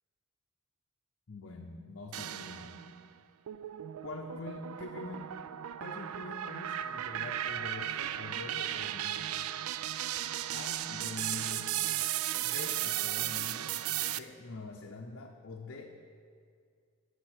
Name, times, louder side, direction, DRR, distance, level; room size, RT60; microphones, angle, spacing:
voice 1, 1.3-2.8 4.0-5.3 5.8-9.5 10.5-11.8 12.4-13.8 14.0-16.0, left 3 dB, 55° left, 0 dB, 0.7 m, -45 dB
sound 1, 2.1-3.0 3.5-14.2, right 12 dB, 70° right, 0.3 m, -35 dB
11.0 x 5.1 x 8.0 m, 2.2 s
head